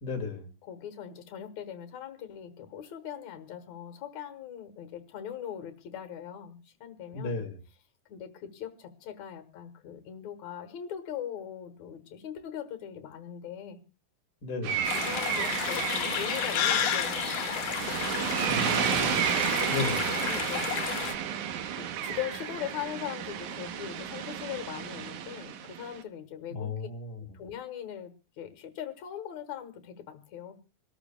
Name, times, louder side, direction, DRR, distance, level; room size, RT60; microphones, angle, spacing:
voice 1, 0.0-0.5 7.1-7.6 14.4-14.9 18.5-19.3 19.7-20.1 26.5-27.2, left 3 dB, 35° left, 3 dB, 2.5 m, -35 dB
voice 2, 0.6-7.4 8.1-13.8 14.9-19.3 20.2-21.0 21.8-26.9 27.3-30.6, left 9 dB, 70° left, 9 dB, 2.5 m, -41 dB
sound 1, 14.6-26.0, right 9 dB, 80° right, 2.4 m, -32 dB
sound 2, 14.8-21.1, left 11 dB, 85° left, 2.3 m, -32 dB
26.0 x 13.0 x 2.2 m, 0.30 s
omnidirectional pair, 3.4 m